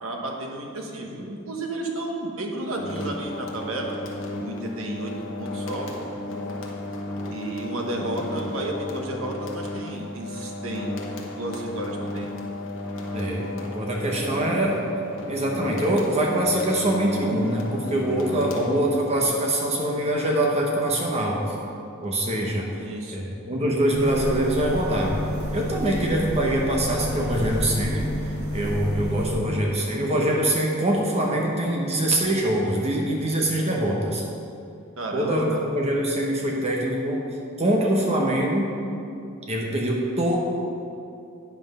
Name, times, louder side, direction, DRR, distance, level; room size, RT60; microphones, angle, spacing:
voice 1, 0.0-4.0 4.4-6.1 7.3-11.0 11.4-12.3 22.8-23.3 35.0-35.7, right 1 dB, 75° right, 1 dB, 1.2 m, -32 dB
sound 1, 2.7-19.2, left 1 dB, 65° left, 1.1 m, -34 dB
voice 2, 13.1-14.9 15.3-21.4 22.0-22.7 23.1-25.1 25.5-34.2 35.1-37.2 37.6-38.7 39.5-40.4, right 1 dB, 30° right, -1 dB, 1.0 m, -24 dB
sound 2, 23.9-29.4, equal, 90° right, 1.9 m, -30 dB
9.5 x 5.8 x 5.5 m, 2.7 s
head